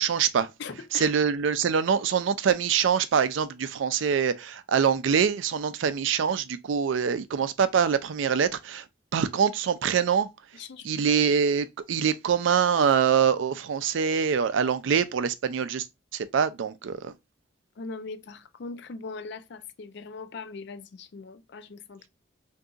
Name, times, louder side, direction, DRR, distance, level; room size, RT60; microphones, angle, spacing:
voice 1, 0.0-0.5 0.9-8.8 9.1-10.3 10.8-15.9 16.1-17.1, right 7 dB, 75° right, 0.4 m, -24 dB
voice 2, 0.6-1.1 10.5-11.1 17.8-22.1, left 4 dB, 60° left, 0.4 m, -40 dB
2.6 x 2.4 x 3.8 m
head